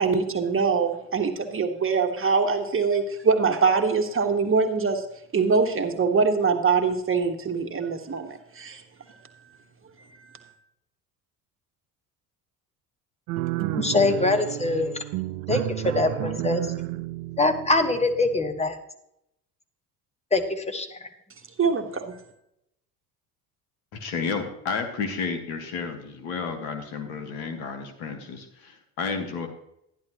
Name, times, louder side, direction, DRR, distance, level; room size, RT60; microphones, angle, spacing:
voice 1, 0.0-5.0 5.3-8.8 9.1-9.2 10.2-10.5 21.6-22.2, right 5 dB, 30° right, 5 dB, 1.6 m, -23 dB
sound 1, 13.3-18.6, right 15 dB, 70° right, 0.6 m, -31 dB
voice 2, 13.7-14.9 15.5-16.6 17.4-18.8 20.3-21.1, left 2 dB, 15° left, 7 dB, 1.5 m, -23 dB
voice 3, 23.9-29.5, left 5 dB, 80° left, 7 dB, 1.6 m, -31 dB
12.5 x 10.5 x 3.0 m, 0.79 s
hypercardioid pair, 65°, 43 cm